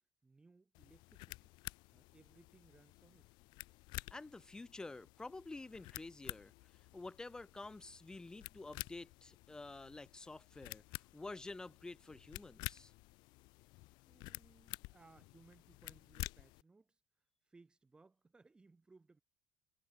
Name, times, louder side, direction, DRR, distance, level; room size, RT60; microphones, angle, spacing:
voice 1, 0.0-1.6 1.9-3.3 14.0-17.0 17.4-19.2, right 3 dB, 10° right, 2.8 m, -65 dB
sound 1, 0.7-16.6, left 23 dB, 85° left, 1.6 m, -51 dB
voice 2, 4.1-6.5 6.9-12.9, left 3 dB, 10° left, 1.8 m, -49 dB
cardioid pair, 170°, 7 cm